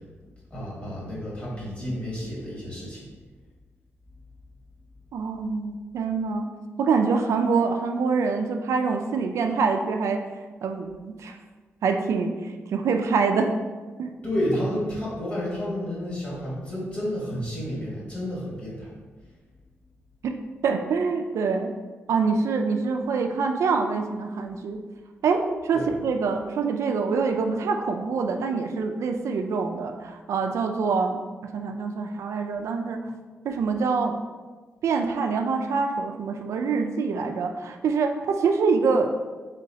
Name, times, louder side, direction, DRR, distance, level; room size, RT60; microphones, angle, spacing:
voice 1, 0.5-3.0 14.2-18.9 25.7-25.9, equal, 25° left, -6 dB, 1.4 m, -30 dB
voice 2, 5.1-6.5 6.8-10.2 10.6-11.4 11.8-13.5 14.0-14.1 20.2-20.3 20.6-21.7 22.1-24.8 25.2-33.0 33.4-34.2 34.8-39.1, right 5 dB, 80° right, 4 dB, 0.4 m, -25 dB
4.1 x 3.8 x 2.7 m, 1.4 s
wide cardioid pair, 160°, 5 cm